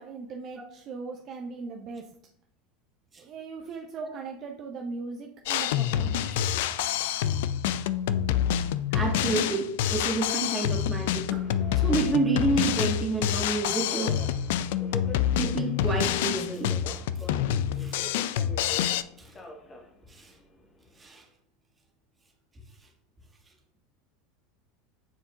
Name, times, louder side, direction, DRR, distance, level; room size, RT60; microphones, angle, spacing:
voice 1, 0.0-2.2 3.2-6.5, right 4 dB, 45° right, 2 dB, 0.6 m, -39 dB
Drum kit, 5.5-19.0, left 10 dB, 65° left, 0.3 m, -27 dB
voice 2, 8.9-11.4 11.7-14.2 15.3-16.8 17.7-18.0 19.2-19.3 20.1-20.3 21.0-21.2, right 3 dB, 20° right, 0 dB, 1.8 m, -29 dB
Subway metro underground, 11.4-21.1, left 2 dB, 25° left, 1.3 m, -45 dB
9.7 x 4.4 x 2.4 m, 0.73 s
hypercardioid pair, 80°, 0 cm